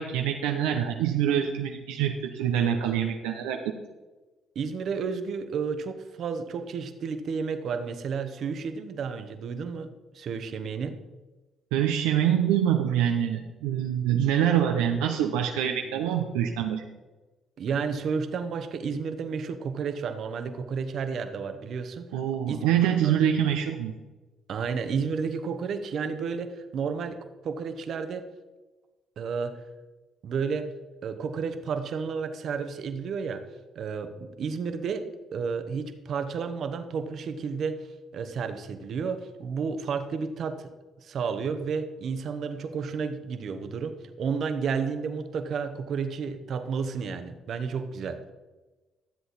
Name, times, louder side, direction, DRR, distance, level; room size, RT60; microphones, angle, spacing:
voice 1, 0.0-3.7 11.7-16.8 22.1-23.9, right 9 dB, 90° right, 3 dB, 0.7 m, -25 dB
voice 2, 4.5-9.9 10.1-11.0 15.8-16.0 17.6-22.1 22.5-22.6 23.0-23.1 24.5-28.2 29.2-29.6 30.2-30.7 31.0-33.4 33.7-35.0 35.3-37.8 38.1-40.7 41.0-48.2, right 5 dB, 60° right, 8 dB, 1.1 m, -31 dB
13.0 x 7.7 x 4.2 m, 1.2 s
supercardioid pair, 60°, 0 cm